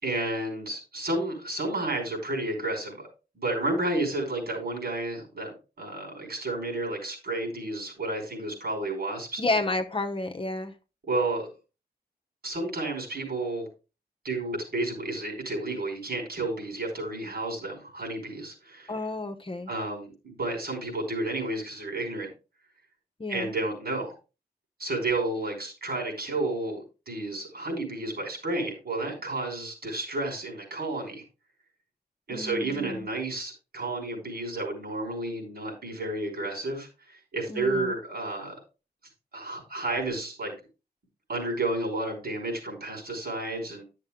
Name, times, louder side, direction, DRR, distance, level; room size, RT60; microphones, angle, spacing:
voice 1, 0.0-3.1 3.4-5.5 5.8-9.4 11.1-11.5 12.4-13.7 14.2-18.9 19.7-22.3 23.3-24.2 24.8-31.2 32.3-38.5 39.3-40.5 41.3-43.8, right 2 dB, 70° right, 5.3 m, -31 dB
voice 2, 9.4-10.7 18.9-19.7 23.2-23.5 32.3-33.1 37.5-37.9, left 2 dB, 30° left, 1.0 m, -31 dB
11.5 x 6.7 x 3.7 m
wide cardioid pair, 115°, 17 cm